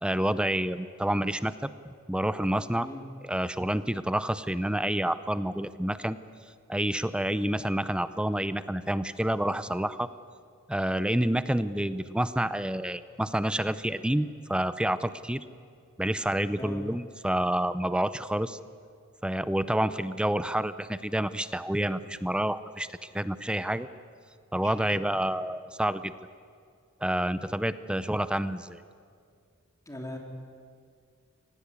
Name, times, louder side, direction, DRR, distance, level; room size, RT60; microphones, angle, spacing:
voice 1, 0.0-2.9 3.2-6.2 6.7-10.1 10.7-15.4 16.0-18.6 19.2-23.9 24.5-26.1 27.0-28.8, right 1 dB, 5° right, 14 dB, 0.5 m, -28 dB
voice 2, 24.6-25.0 29.9-30.2, left 1 dB, 15° left, 2 dB, 3.1 m, -40 dB
25.5 x 19.0 x 8.3 m, 2.2 s
head